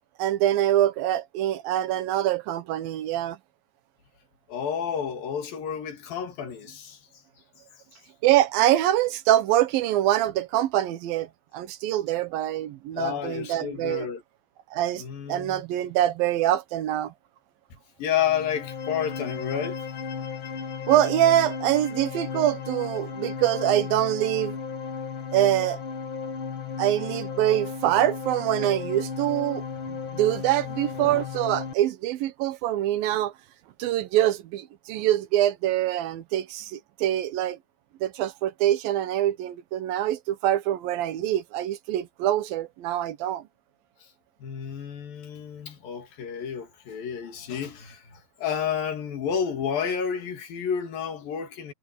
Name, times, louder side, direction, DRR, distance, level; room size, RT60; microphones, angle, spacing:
voice 1, 0.2-3.4 8.2-11.3 11.5-14.1 14.7-17.1 20.9-24.6 25.3-25.8 26.8-29.6 30.1-33.3 33.8-37.6 38.0-43.4, right 13 dB, 80° right, 2.8 m, -24 dB
voice 2, 4.5-7.0 13.0-14.2 15.0-15.6 18.0-19.8 44.4-51.7, left 8 dB, 75° left, 4.1 m, -30 dB
sound 1, 18.2-31.7, left 6 dB, 60° left, 1.4 m, -35 dB
omnidirectional pair, 4.1 m